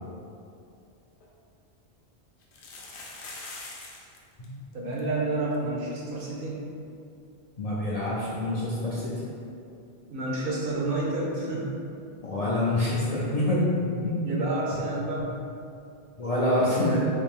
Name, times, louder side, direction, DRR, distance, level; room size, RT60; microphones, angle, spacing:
sound 1, 0.8-0.9 1.2-1.3 2.4-4.2 4.4-4.5 4.7-5.0 5.5-5.6 5.9-6.0 8.1-8.2, left 3 dB, 80° left, 0.9 m, -42 dB
voice 1, 4.7-6.7 10.1-11.7 14.2-15.3, right 2 dB, 60° right, -4 dB, 0.8 m, -29 dB
voice 2, 7.6-9.2 12.2-14.2 15.2-15.3 16.2-17.1, left 1 dB, 50° left, -7 dB, 0.4 m, -26 dB
3.5 x 2.5 x 3.5 m, 2.5 s
omnidirectional pair, 1.1 m